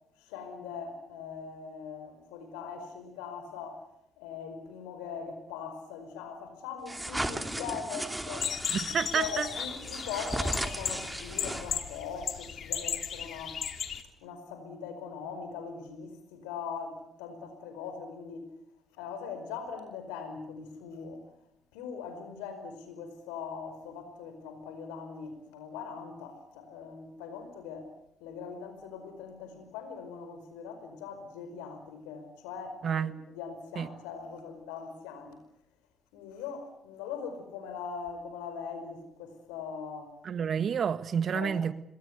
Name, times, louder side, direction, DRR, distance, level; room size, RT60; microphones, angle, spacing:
voice 1, 0.2-3.8 4.2-13.6 14.2-18.5 18.9-21.2 21.7-27.9 28.2-35.4 36.1-40.1 41.3-41.6, left 6 dB, 80° left, 5.0 m, -41 dB
sound 1, 6.9-12.0, right 1 dB, 10° right, 2.9 m, -36 dB
sound 2, 8.4-14.0, left 8 dB, 55° left, 2.6 m, -35 dB
voice 2, 8.7-9.5 32.8-33.1 33.8-33.9 40.2-41.7, right 7 dB, 55° right, 1.5 m, -29 dB
26.5 x 21.5 x 8.2 m
hypercardioid pair, 50°, 0 cm